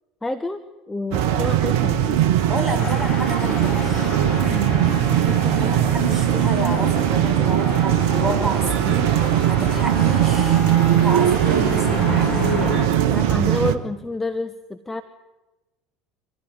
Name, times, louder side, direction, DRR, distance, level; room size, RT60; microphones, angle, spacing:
voice 1, 0.2-0.6 0.9-2.0 5.1-5.5 13.1-15.0, left 2 dB, 10° left, 9 dB, 1.3 m, -28 dB
sound 1, 1.1-13.8, right 11 dB, 60° right, 1.4 m, -20 dB
voice 2, 2.5-4.8 5.6-10.6 11.0-12.4, right 1 dB, 15° right, 5 dB, 6.2 m, -30 dB
sound 2, 2.8-12.9, left 7 dB, 35° left, 2.3 m, -32 dB
25.0 x 16.5 x 9.7 m, 1.1 s
figure-of-eight pair, 65°, 2 cm